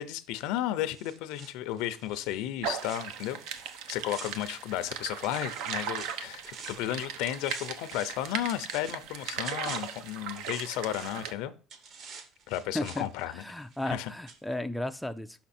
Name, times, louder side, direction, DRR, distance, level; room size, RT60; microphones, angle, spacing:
voice 1, 0.0-3.4 3.9-11.5 12.5-13.4 13.9-14.1, left 12 dB, 80° left, 12 dB, 0.6 m, -33 dB
sound 1, 0.9-5.0 5.2-7.0 7.3-11.3 11.7-14.0 14.3-14.4, right 5 dB, 45° right, 1.1 m, -48 dB
sound 2, 2.6-11.3, right 7 dB, 80° right, 0.8 m, -38 dB
voice 2, 12.7-15.4, left 1 dB, ahead, 8 dB, 0.3 m, -35 dB
5.9 x 5.9 x 4.3 m, 0.36 s
cardioid pair, 150°, 0 cm